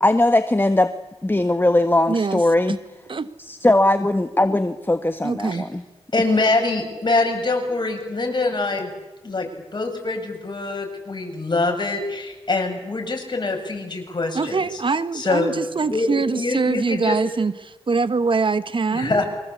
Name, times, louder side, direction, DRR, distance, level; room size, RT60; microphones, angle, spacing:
voice 1, 0.0-0.9 1.2-2.8 3.5-5.8, left 1 dB, 20° left, 9 dB, 1.5 m, -19 dB
voice 2, 2.1-2.4 3.1-3.3 5.2-5.7 14.3-19.2, right 4 dB, 50° right, 13 dB, 1.2 m, -23 dB
voice 3, 6.1-8.9 9.2-14.8 15.1-15.6 15.9-17.2 18.9-19.2, left 3 dB, 40° left, 3 dB, 7.7 m, -24 dB
28.0 x 24.5 x 8.4 m, 1.1 s
cardioid pair, 55°, 11 cm